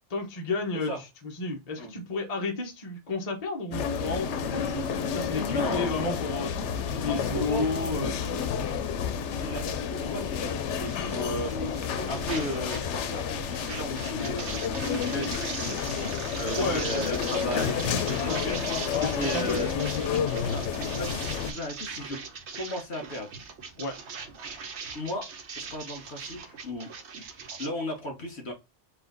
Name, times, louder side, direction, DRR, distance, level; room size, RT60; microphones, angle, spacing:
voice 1, 0.1-1.1 1.3-6.6 6.9-8.4 9.4-9.6 16.6-17.0 18.3-18.4 18.9-19.7 23.8-23.9, left 3 dB, 35° left, 1.0 m, -32 dB
sound 1, 3.7-21.5, left 7 dB, 80° left, 0.9 m, -30 dB
voice 2, 5.4-5.9 7.1-7.7 9.3-9.7 10.0-11.5 12.1-14.5 14.8-19.7 20.4-22.2 22.5-23.3 24.9-25.3 25.6-26.9 27.6-28.5, left 1 dB, 65° left, 1.8 m, -35 dB
sound 2, 10.8-12.9 13.1-27.7, right 5 dB, 75° right, 1.2 m, -40 dB
4.3 x 2.4 x 3.8 m
omnidirectional pair, 1.2 m